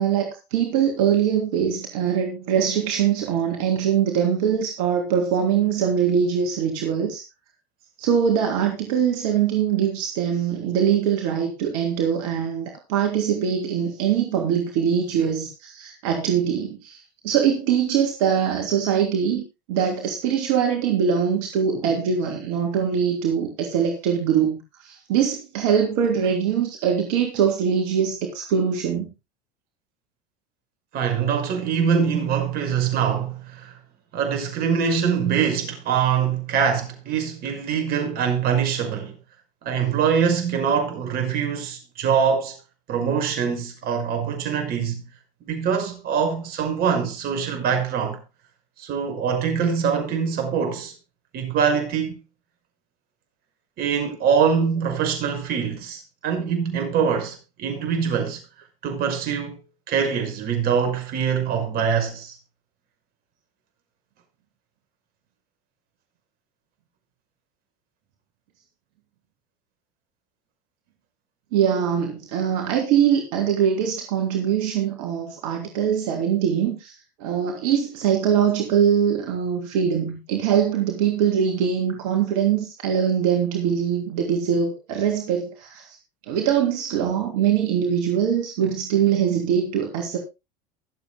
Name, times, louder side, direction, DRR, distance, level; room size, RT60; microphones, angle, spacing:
voice 1, 0.0-7.2 8.0-29.1 71.5-76.9 77.2-86.0 86.3-90.2, right 8 dB, 70° right, 3.2 m, -22 dB
voice 2, 30.9-33.7 34.1-39.2 39.6-42.6 42.9-45.0 45.5-48.2 48.8-50.9 51.3-52.2 53.8-58.4 58.8-59.6 59.9-62.4, right 7 dB, 50° right, 5.6 m, -23 dB
23.5 x 8.1 x 2.2 m
supercardioid pair, 105°, 21 cm